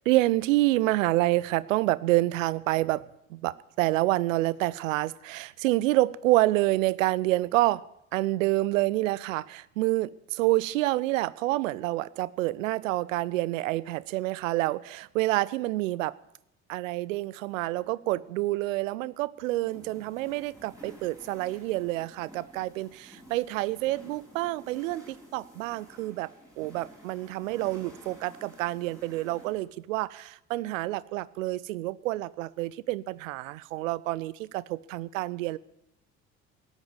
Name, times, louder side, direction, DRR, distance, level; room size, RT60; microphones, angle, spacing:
voice 1, 0.1-3.0 3.3-7.8 8.1-16.2 16.7-26.3 26.6-35.6, right 18 dB, 70° right, 0.6 m, -28 dB
sound 1, 19.6-29.6, equal, 10° right, 6.2 m, -52 dB
18.0 x 8.2 x 7.1 m
figure-of-eight pair, 55°, 41 cm